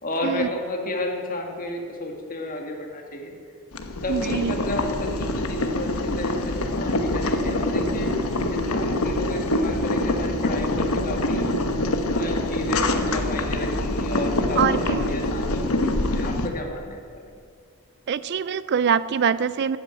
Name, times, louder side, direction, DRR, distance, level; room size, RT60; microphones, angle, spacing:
voice 1, 0.0-3.3 4.0-11.5 11.9-17.3, left 1 dB, 40° left, 3 dB, 1.9 m, -32 dB
Boiling, 3.7-16.5, left 1 dB, 75° left, 1.2 m, -25 dB
voice 2, 4.1-4.6 14.6-15.1 18.1-19.8, right 7 dB, 50° right, 16 dB, 0.3 m, -24 dB
13.0 x 9.1 x 8.7 m, 2.3 s
head